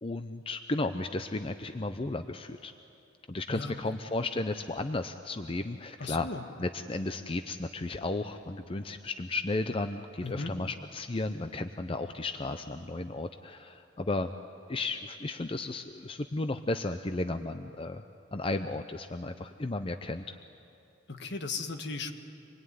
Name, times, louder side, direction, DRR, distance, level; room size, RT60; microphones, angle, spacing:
voice 1, 0.0-2.7 3.3-6.3 6.6-14.3 14.7-18.0 18.3-20.4, left 2 dB, 30° left, 8 dB, 0.6 m, -34 dB
voice 2, 6.0-6.4 10.2-10.5 21.1-22.2, left 3 dB, 60° left, 6 dB, 1.6 m, -36 dB
26.5 x 21.0 x 9.5 m, 2.7 s
head